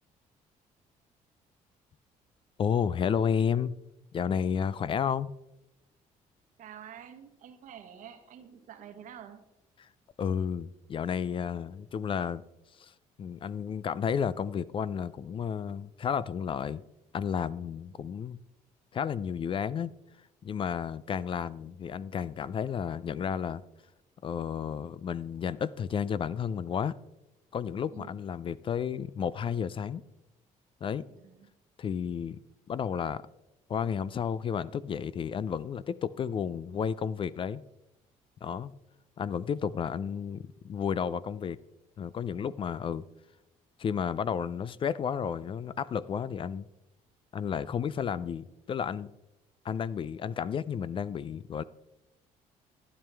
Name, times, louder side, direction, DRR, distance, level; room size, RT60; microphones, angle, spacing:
voice 1, 2.6-3.7 4.1-5.3 10.2-12.4 12.8-12.9 13.2-16.8 17.1-18.4 18.9-19.9 20.4-23.6 24.2-26.9 27.5-30.0 30.8-31.1 31.8-32.4 32.7-33.2 33.7-37.6 38.4-38.7 39.2-41.6 42.0-43.0 43.8-46.7 47.3-49.1 49.6-51.6, left 7 dB, 40° left, 18 dB, 0.4 m, -32 dB
voice 2, 6.6-9.4 27.9-28.2 31.0-31.5, right 9 dB, 70° right, 9 dB, 1.1 m, -48 dB
12.0 x 8.8 x 3.4 m, 0.90 s
cardioid pair, 100°, 14 cm